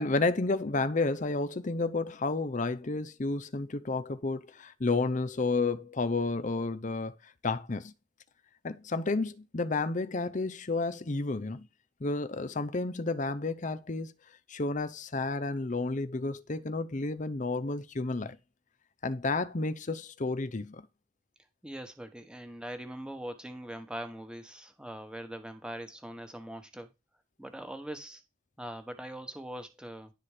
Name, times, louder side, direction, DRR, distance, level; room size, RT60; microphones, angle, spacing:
voice 1, 0.0-7.1 7.4-7.9 8.6-11.7 12.0-14.1 14.5-18.4 19.0-20.9, left 3 dB, 40° left, 0.6 m, -31 dB
voice 2, 21.6-26.9 27.4-28.2 28.6-30.1, right 1 dB, 5° right, 1.1 m, -42 dB
11.0 x 4.3 x 4.9 m
head